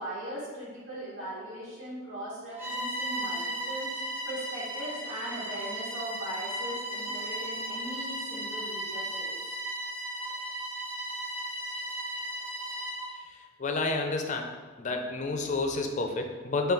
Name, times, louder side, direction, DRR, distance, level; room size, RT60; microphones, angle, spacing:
voice 1, 0.0-9.6, right 1 dB, 70° right, -10 dB, 1.3 m, -39 dB
Bowed string instrument, 2.5-13.2, right 1 dB, 10° right, 0.7 m, -35 dB
voice 2, 13.3-14.5 14.8-16.7, left 3 dB, 40° left, 4 dB, 0.5 m, -30 dB
5.5 x 2.3 x 3.9 m, 1.4 s
head